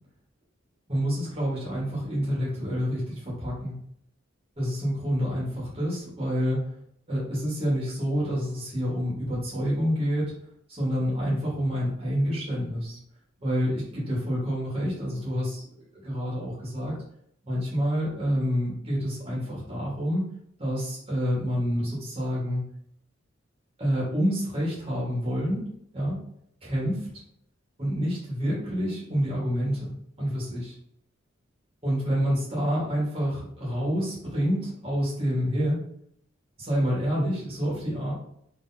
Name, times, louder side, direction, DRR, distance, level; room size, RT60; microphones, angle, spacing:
voice 1, 0.9-3.8 4.6-6.7 7.1-10.3 10.7-13.0 13.4-15.7 15.9-17.0 17.4-20.2 20.6-22.6 23.8-25.7 25.9-26.2 26.6-27.1 27.8-29.9 30.2-30.7 31.8-35.8 36.6-38.1, equal, 30° right, -6 dB, 1.5 m, -28 dB
4.0 x 3.2 x 2.7 m, 0.68 s
head